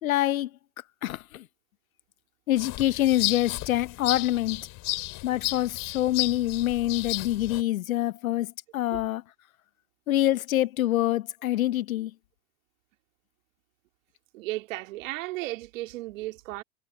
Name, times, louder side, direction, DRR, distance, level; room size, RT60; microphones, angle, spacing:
voice 1, 0.0-0.5 1.0-1.5 2.5-4.6 5.2-9.2 10.1-12.1, left 14 dB, 80° left, 1.0 m, -26 dB
sound 1, 2.6-7.6, left 20 dB, 50° left, 3.3 m, -33 dB
voice 2, 14.3-16.6, right 18 dB, 70° right, 2.4 m, -35 dB
hypercardioid pair, 90°, 41 cm